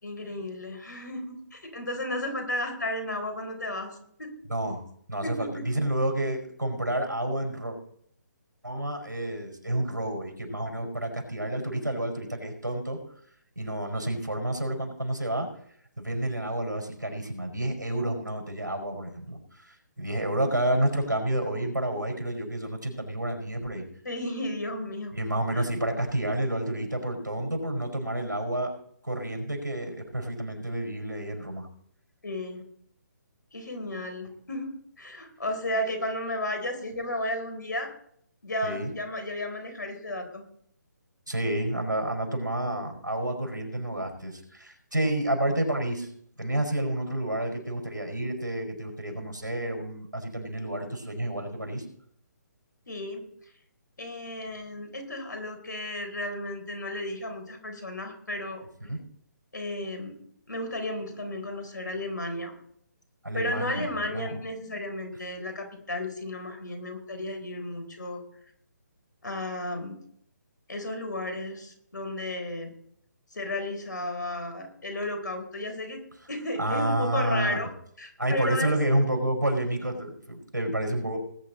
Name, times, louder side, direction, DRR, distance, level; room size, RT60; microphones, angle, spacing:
voice 1, 0.0-3.9 4.2-4.3 5.2-5.6 24.0-25.1 25.5-25.7 32.2-32.6 33.5-37.9 38.4-40.5 52.9-53.2 54.0-58.6 59.5-60.2 60.5-62.5 63.3-68.2 69.2-70.0 70.7-72.7 73.3-76.0 76.3-77.7 78.0-78.7, left 1 dB, 75° left, 6 dB, 3.9 m, -33 dB
voice 2, 4.5-4.8 5.1-7.8 8.6-13.0 13.6-15.5 16.0-23.8 25.1-28.7 29.0-31.7 38.6-38.9 41.3-46.1 46.4-51.8 58.9-59.0 63.2-64.4 76.6-77.6 78.2-81.2, right 1 dB, 90° right, 3 dB, 4.6 m, -29 dB
19.5 x 9.2 x 4.2 m, 0.66 s
figure-of-eight pair, 145°, 10 cm